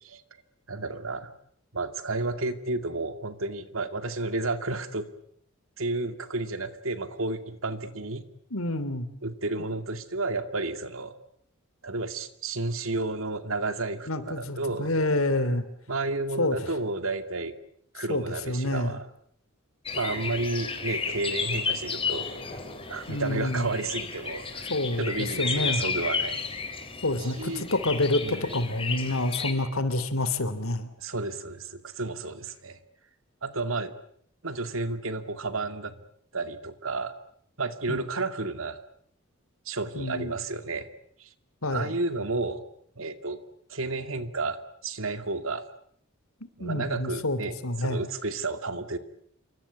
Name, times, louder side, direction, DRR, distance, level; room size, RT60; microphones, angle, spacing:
voice 1, 0.7-1.3 1.7-5.1 5.8-8.2 9.2-11.1 11.8-14.9 15.9-17.5 17.9-19.1 19.9-22.3 22.9-24.7 25.0-26.4 27.2-27.7 28.2-28.6 31.0-32.8 33.4-33.9 34.4-35.9 36.3-37.1 37.6-38.8 39.7-40.9 41.2-41.3 41.7-42.6 43.0-43.4 43.7-45.6 46.6-49.0, right 3 dB, 70° right, 10 dB, 2.4 m, -32 dB
voice 2, 8.5-9.1 14.1-15.6 16.4-16.6 18.1-19.0 23.1-23.7 24.7-25.8 27.0-30.9 37.9-38.0 39.9-40.3 41.6-41.9 46.6-48.0, left 2 dB, 85° left, 13 dB, 3.2 m, -28 dB
sound 1, 19.9-29.5, left 5 dB, 25° left, 4.0 m, -33 dB
28.0 x 24.5 x 8.5 m, 0.67 s
head